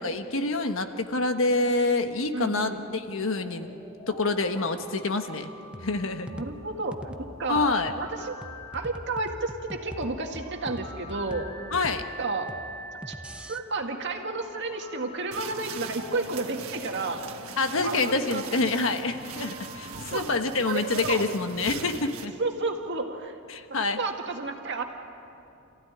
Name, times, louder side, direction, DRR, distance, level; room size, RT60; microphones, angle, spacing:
voice 1, 0.0-3.7 4.1-5.5 5.8-6.3 7.5-7.9 11.7-12.0 17.6-22.4 23.5-24.0, left 3 dB, 70° left, 7 dB, 1.3 m, -27 dB
voice 2, 2.3-2.8 6.3-7.7 8.0-8.3 8.7-11.5 12.2-12.5 13.1-17.2 17.8-18.5 20.1-20.3 20.6-21.3 22.4-23.4 23.7-24.8, right 3 dB, 60° right, 2 dB, 2.0 m, -31 dB
sound 1, 2.9-20.1, equal, 25° left, 4.7 m, -47 dB
sound 2, 5.7-13.6, equal, 5° right, 0.8 m, -43 dB
sound 3, 15.3-22.3, right 5 dB, 90° right, 1.4 m, -40 dB
28.5 x 15.5 x 9.9 m, 2.7 s
head